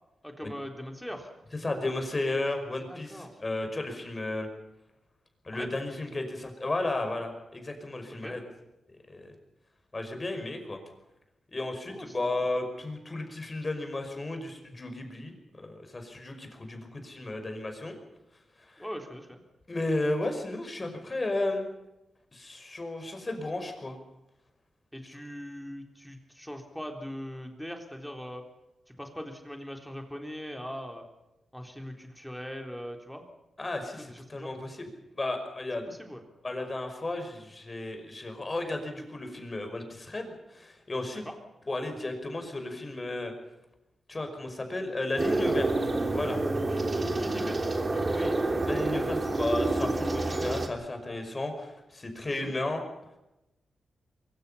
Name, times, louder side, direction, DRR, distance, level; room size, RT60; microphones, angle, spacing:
voice 1, 0.2-1.3 2.9-3.4 5.5-5.8 8.1-8.4 11.9-12.4 18.8-19.4 24.9-28.4 28.9-31.1 31.5-33.2 34.0-34.5 35.9-36.2 41.2-41.4 47.1-48.2 52.3-52.5, equal, ahead, 3 dB, 3.7 m, -41 dB
voice 2, 1.6-4.5 5.4-8.4 9.1-9.3 9.9-10.8 11.5-17.9 18.7-18.8 19.7-21.7 22.3-24.0 33.6-34.9 35.2-35.9 36.4-41.2 41.7-43.3 44.1-45.7 46.1-46.4 48.1-48.4 48.6-52.8, left 2 dB, 25° left, 5 dB, 5.4 m, -33 dB
sound 1, 45.2-50.7, right 2 dB, 30° right, 3.3 m, -28 dB
24.0 x 23.5 x 5.7 m, 0.93 s
wide cardioid pair, 105°, 0 cm